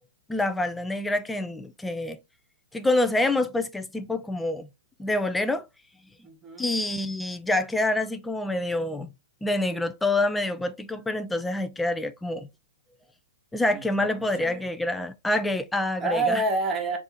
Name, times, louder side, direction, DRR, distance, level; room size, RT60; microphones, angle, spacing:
voice 1, 0.3-2.2 2.7-4.7 5.0-5.7 6.6-9.1 9.4-12.5 13.5-16.4, left 2 dB, 5° left, 0.3 m, -27 dB
voice 2, 6.2-6.8 13.7-14.6 16.0-17.0, right 2 dB, 15° right, 0.9 m, -29 dB
3.4 x 2.5 x 4.1 m
hypercardioid pair, 165°, 0 cm